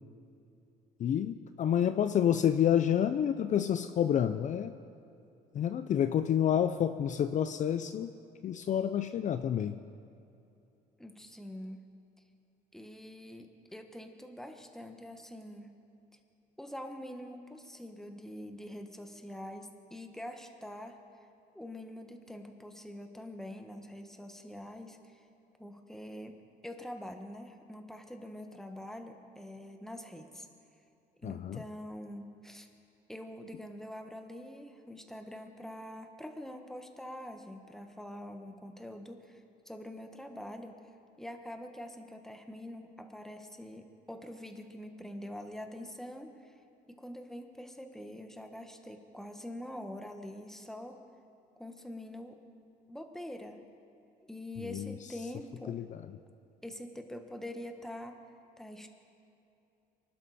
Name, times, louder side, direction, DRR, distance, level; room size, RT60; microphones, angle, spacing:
voice 1, 1.0-4.7 5.5-8.1 8.4-9.7 31.2-31.6 54.6-54.9 55.7-56.0, left 9 dB, 45° left, 10 dB, 0.5 m, -29 dB
voice 2, 11.0-11.8 12.7-15.7 16.6-21.0 21.5-25.3 25.6-26.4 26.6-30.5 31.2-32.7 33.1-40.8 41.2-46.6 46.9-51.0 51.6-52.4 52.9-53.6 54.3-55.8 56.6-58.2 58.6-58.9, left 1 dB, 5° left, 5 dB, 1.4 m, -45 dB
24.5 x 12.0 x 4.3 m, 2.7 s
cardioid pair, 110°, 17 cm